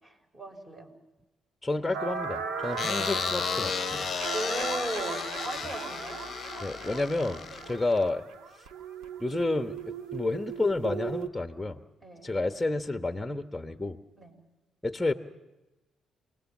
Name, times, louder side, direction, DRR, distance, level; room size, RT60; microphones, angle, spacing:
voice 1, 0.0-0.9 4.3-6.2 6.5-6.7 7.5-7.7 12.0-12.3 14.2-14.4, right 1 dB, 25° right, 5 dB, 5.3 m, -38 dB
voice 2, 1.6-4.1 6.6-8.2 9.2-11.8 12.2-14.0 14.8-15.1, left 2 dB, 5° left, 6 dB, 1.2 m, -30 dB
sound 1, 1.9-11.3, right 5 dB, 90° right, 1.7 m, -37 dB
sound 2, 2.8-8.1, left 7 dB, 50° left, 0.7 m, -34 dB
28.5 x 20.0 x 7.4 m, 1.1 s
cardioid pair, 90°, 0 cm